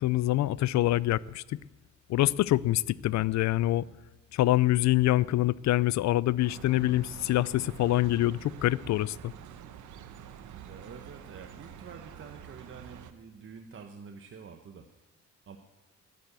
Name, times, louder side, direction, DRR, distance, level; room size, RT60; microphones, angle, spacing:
voice 1, 0.0-1.4 2.1-3.8 4.3-9.3, left 15 dB, 65° left, 22 dB, 0.4 m, -25 dB
sound 1, 6.4-13.1, right 9 dB, 75° right, 1.0 m, -47 dB
voice 2, 10.7-14.9 15.5-15.6, right 6 dB, 45° right, 5 dB, 1.0 m, -47 dB
10.5 x 10.5 x 8.3 m, 1.1 s
cardioid pair, 90°, 30 cm